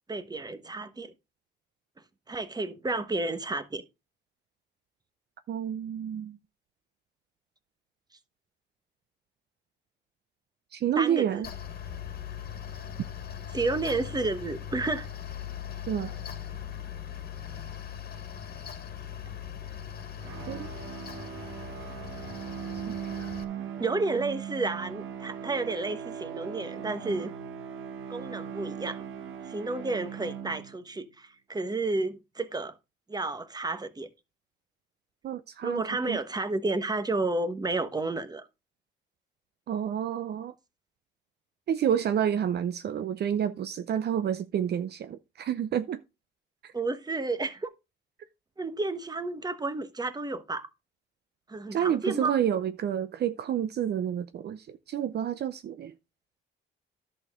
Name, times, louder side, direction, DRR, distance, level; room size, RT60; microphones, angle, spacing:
voice 1, 0.1-1.1 2.3-3.8 11.0-11.4 13.5-15.1 23.8-27.3 28.1-29.0 29.5-32.8 33.1-34.1 35.6-38.5 46.7-47.7 48.6-50.7 51.5-52.3, right 3 dB, 20° right, 1.2 m, -31 dB
voice 2, 5.5-6.4 10.7-11.5 15.9-16.1 20.5-20.7 22.9-23.3 35.2-36.2 39.7-40.5 41.7-46.0 46.6-46.7 51.7-55.9, right 9 dB, 55° right, 0.6 m, -29 dB
Mechanical fan, 11.4-23.4, left 9 dB, 50° left, 1.7 m, -40 dB
sound 1, 20.2-31.0, right 8 dB, 85° right, 1.2 m, -39 dB
11.0 x 6.5 x 3.7 m
cardioid pair, 90°, 20 cm